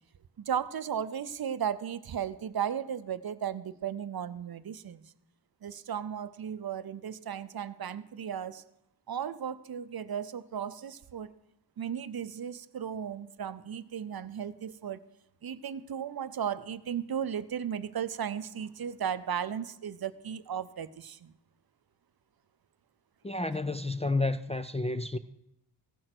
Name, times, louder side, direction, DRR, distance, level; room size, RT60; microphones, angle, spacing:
voice 1, 0.4-5.1 5.6-8.6 9.1-11.3 11.8-15.0 15.4-21.3, right 8 dB, 60° right, 0.6 m, -35 dB
voice 2, 23.2-25.2, left 2 dB, 15° left, 0.3 m, -30 dB
15.5 x 6.5 x 6.0 m
wide cardioid pair, 90°, 43 cm